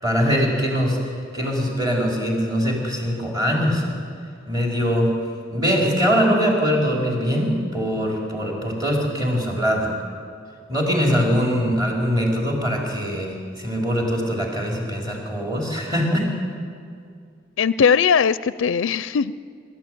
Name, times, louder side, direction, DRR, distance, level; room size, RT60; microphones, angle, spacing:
voice 1, 0.0-3.8 4.5-5.1 5.5-9.9 10.7-16.3, equal, 20° right, -1 dB, 4.4 m, -22 dB
voice 2, 17.6-19.3, left 6 dB, 70° left, 17 dB, 0.4 m, -19 dB
25.5 x 13.0 x 9.2 m, 2.3 s
head